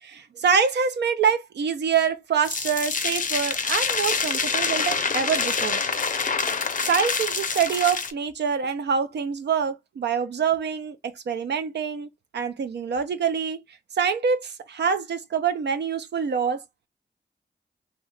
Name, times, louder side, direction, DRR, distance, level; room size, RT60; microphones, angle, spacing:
voice 1, 0.0-5.8 6.8-12.1 12.3-13.6 13.9-16.6, right 6 dB, 70° right, 0.4 m, -25 dB
sound 1, 2.4-8.1, left 5 dB, 45° left, 0.5 m, -26 dB
2.7 x 2.2 x 3.1 m
cardioid pair, 60°, 18 cm